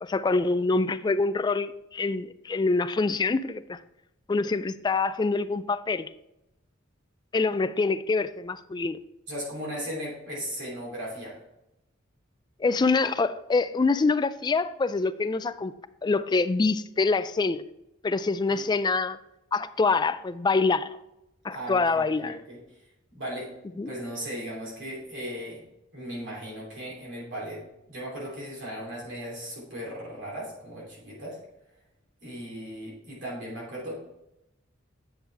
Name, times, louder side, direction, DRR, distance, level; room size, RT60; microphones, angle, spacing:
voice 1, 0.0-3.8 4.3-6.1 7.3-9.0 12.6-15.7 16.0-17.6 18.0-19.2 19.5-21.0 21.4-22.4 23.8-23.9, left 3 dB, 20° left, 0.3 m, -25 dB
voice 2, 9.3-11.4 18.5-18.6 21.5-22.6 23.1-23.5 23.8-25.6 25.9-27.6 27.9-31.4 32.2-34.0, equal, 65° right, 3.0 m, -37 dB
8.8 x 6.2 x 3.3 m
head